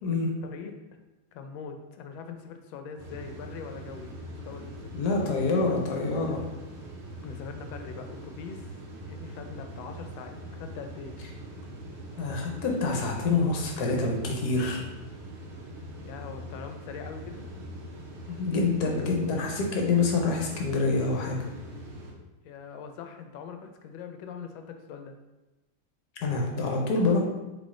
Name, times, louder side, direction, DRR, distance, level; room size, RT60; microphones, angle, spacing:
voice 1, 0.4-0.8 1.3-5.5 7.2-8.7 9.1-11.2 16.0-17.4 22.4-25.1, left 6 dB, 80° left, 6 dB, 1.3 m, -42 dB
sound 1, 3.0-22.1, right 1 dB, 80° right, 0.6 m, -42 dB
voice 2, 4.9-6.4 12.2-14.8 18.3-21.5 26.2-27.2, left 3 dB, 60° left, 0 dB, 1.2 m, -26 dB
4.2 x 3.1 x 3.6 m, 1.1 s
omnidirectional pair, 2.2 m